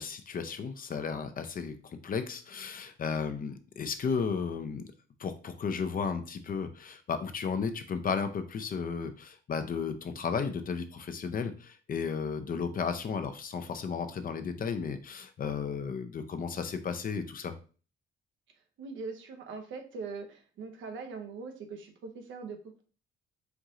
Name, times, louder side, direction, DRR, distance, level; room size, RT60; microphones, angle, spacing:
voice 1, 0.0-4.9 5.2-17.5, left 6 dB, 45° left, 8 dB, 0.7 m, -34 dB
voice 2, 18.8-22.8, right 4 dB, 75° right, 5 dB, 1.0 m, -41 dB
4.6 x 2.7 x 3.7 m, 0.37 s
cardioid pair, 90°, 20 cm